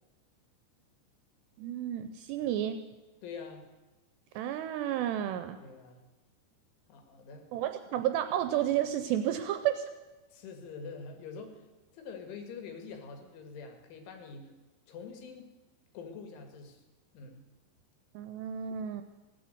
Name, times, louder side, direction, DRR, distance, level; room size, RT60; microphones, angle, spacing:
voice 1, 1.6-2.8 4.4-5.6 7.5-9.9 18.1-19.0, right 11 dB, 85° right, 9 dB, 2.5 m, -31 dB
voice 2, 3.2-3.7 5.6-6.0 6.9-7.5 10.3-11.6 11.9-14.5 14.9-15.5 15.9-16.8 17.1-17.4, left 5 dB, 85° left, 5 dB, 4.3 m, -45 dB
16.5 x 10.0 x 8.0 m, 1.2 s
omnidirectional pair, 5.5 m